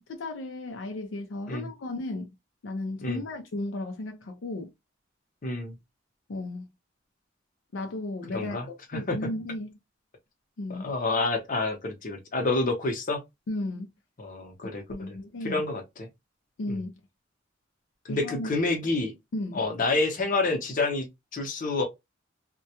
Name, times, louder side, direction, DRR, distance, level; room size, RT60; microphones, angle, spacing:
voice 1, 0.0-2.3 2.6-4.7 6.3-6.7 7.7-9.8 10.6-10.9 13.5-13.9 14.6-15.6 16.6-17.0 18.1-18.5 19.3-19.6, left 2 dB, 75° left, 0.4 m, -35 dB
voice 2, 5.4-5.8 8.3-8.7 8.9-9.2 10.7-13.2 14.2-15.2 15.4-16.1 16.7-16.8 18.1-19.1 19.5-21.8, left 3 dB, 45° left, 0.7 m, -28 dB
2.2 x 2.1 x 2.7 m
head